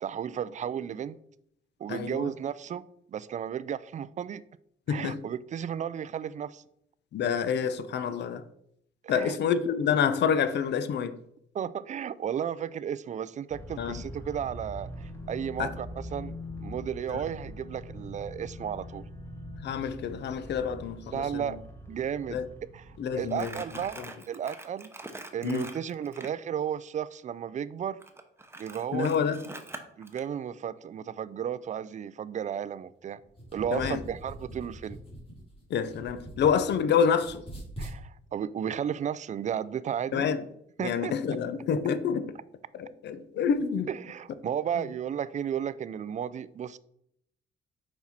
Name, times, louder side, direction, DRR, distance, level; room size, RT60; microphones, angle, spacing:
voice 1, 0.0-1.2 1.8-2.8 3.1-4.4 4.9-6.6 9.0-9.4 11.5-19.0 21.1-21.6 21.9-22.4 22.7-22.8 23.2-24.0 24.3-24.9 25.3-28.0 28.6-29.2 30.0-33.2 33.5-35.0 37.8-40.3 40.8-41.1 43.9-46.8, right 8 dB, 40° right, 0.4 m, -33 dB
voice 2, 1.9-2.3 4.9-5.2 7.1-8.4 9.1-11.2 13.8-14.0 15.6-15.7 17.1-17.2 19.6-21.6 22.3-22.5 23.0-23.6 25.4-25.7 28.9-29.4 33.7-34.0 35.7-37.4 40.1-40.4 40.8-42.3 42.7-43.9, left 7 dB, 60° left, 0.6 m, -28 dB
sound 1, 13.5-23.9, left 1 dB, 10° left, 1.1 m, -43 dB
Crumpling crinkling, 23.3-26.4 28.0-30.2, right 2 dB, 10° right, 0.8 m, -44 dB
sound 2, 33.2-36.8 37.1-38.0, right 1 dB, 30° left, 2.5 m, -42 dB
5.9 x 4.4 x 4.3 m
cardioid pair, 90°, 20 cm